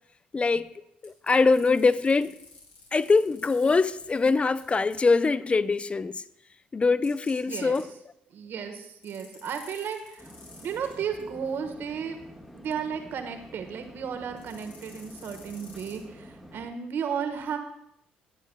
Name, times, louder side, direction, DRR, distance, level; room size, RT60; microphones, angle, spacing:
voice 1, 0.3-0.7 1.0-2.3 2.9-6.2 6.7-7.9, left 4 dB, 25° left, 0.5 m, -23 dB
sound 1, 1.0-5.1 7.0-7.8 9.0-11.6 14.4-16.0, left 3 dB, 60° left, 5.0 m, -51 dB
voice 2, 7.5-7.8 8.3-10.3 10.6-12.2 12.5-17.6, right 7 dB, 60° right, 1.4 m, -34 dB
sound 2, 10.2-16.7, equal, ahead, 1.7 m, -48 dB
19.0 x 9.1 x 2.3 m
hypercardioid pair, 55°, 4 cm